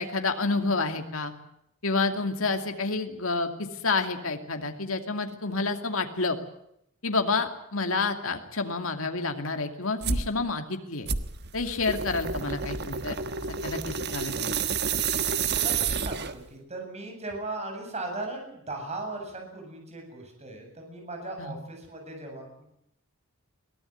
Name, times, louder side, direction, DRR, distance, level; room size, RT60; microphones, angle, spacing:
voice 1, 0.0-1.3 1.8-6.4 7.0-11.1 11.5-13.2 13.6-14.6 21.4-21.6, left 3 dB, 70° left, 6 dB, 2.6 m, -29 dB
sound 1, 10.0-10.3 11.1-16.5, right 6 dB, 50° right, 1.4 m, -29 dB
voice 2, 15.6-22.6, right 2 dB, 30° right, 3 dB, 7.9 m, -38 dB
23.0 x 18.0 x 9.4 m, 0.76 s
head